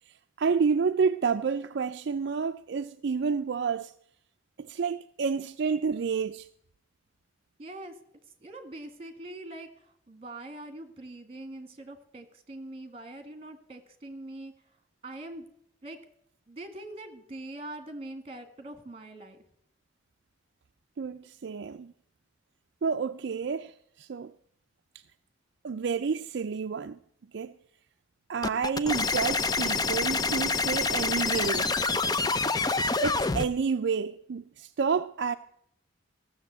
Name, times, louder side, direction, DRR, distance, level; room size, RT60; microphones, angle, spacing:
voice 1, 0.1-3.9 4.6-6.5 21.0-21.9 22.8-24.3 25.6-27.0 27.3-27.5 28.3-31.8 33.0-35.3, right 5 dB, 60° right, 0.4 m, -29 dB
voice 2, 7.6-7.9 8.4-14.5 15.0-15.5 15.8-16.0 16.5-19.4, right 1 dB, 30° right, 1.7 m, -43 dB
sound 1, 28.4-33.5, left 3 dB, 20° left, 0.5 m, -27 dB
15.5 x 6.9 x 8.0 m
head